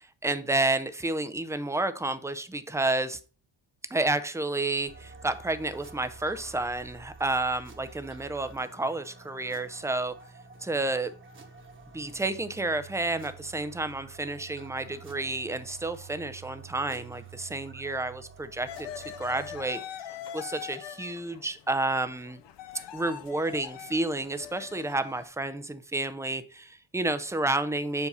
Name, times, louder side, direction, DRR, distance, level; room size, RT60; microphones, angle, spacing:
voice 1, 0.0-3.2 3.9-10.1 10.6-11.1 11.9-19.8 20.3-22.4 22.9-28.1, right 2 dB, 5° right, 0.3 m, -30 dB
sound 1, 4.9-19.7, right 6 dB, 25° right, 1.0 m, -49 dB
sound 2, 18.7-25.3, left 10 dB, 65° left, 0.6 m, -43 dB
7.2 x 2.6 x 5.4 m
cardioid pair, 105°, 47 cm